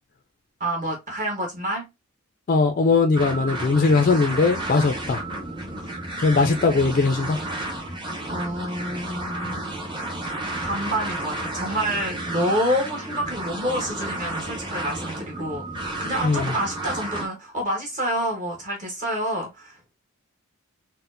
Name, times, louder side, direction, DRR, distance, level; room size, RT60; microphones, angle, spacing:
voice 1, 0.6-1.8 4.8-4.9 5.8-5.9 6.3-6.6 8.3-9.7 10.6-19.9, equal, 35° right, 1.0 m, -28 dB
voice 2, 2.5-5.2 6.2-7.4 16.2-16.5, left 4 dB, 40° left, 0.3 m, -20 dB
sound 1, 3.1-17.3, right 1 dB, 20° right, 0.7 m, -32 dB
4.2 x 2.1 x 2.5 m
head